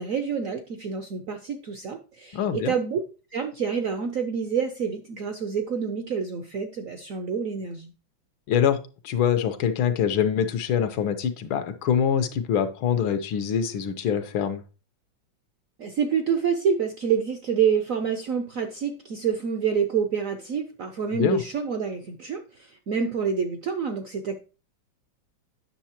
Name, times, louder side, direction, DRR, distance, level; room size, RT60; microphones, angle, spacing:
voice 1, 0.0-3.0 3.3-7.9 15.8-22.4 22.9-24.4, right 6 dB, 70° right, 0.8 m, -27 dB
voice 2, 2.3-2.8 8.5-8.8 9.0-14.6 21.1-21.4, left 8 dB, 85° left, 1.6 m, -24 dB
8.9 x 6.3 x 2.9 m
omnidirectional pair, 2.2 m